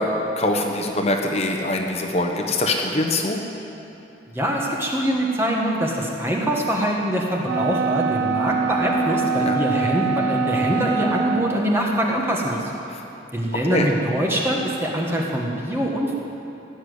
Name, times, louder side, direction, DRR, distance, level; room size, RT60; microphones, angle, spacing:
voice 1, 0.0-3.4 9.4-9.6 12.9-13.1 13.6-13.9, left 1 dB, 35° left, 2 dB, 1.1 m, -23 dB
voice 2, 4.3-12.7 13.3-16.1, right 1 dB, 15° right, -2 dB, 1.5 m, -23 dB
Wind instrument woodwind instrument, 7.4-11.8, right 5 dB, 70° right, 0.9 m, -24 dB
16.5 x 10.0 x 8.1 m, 2.8 s
head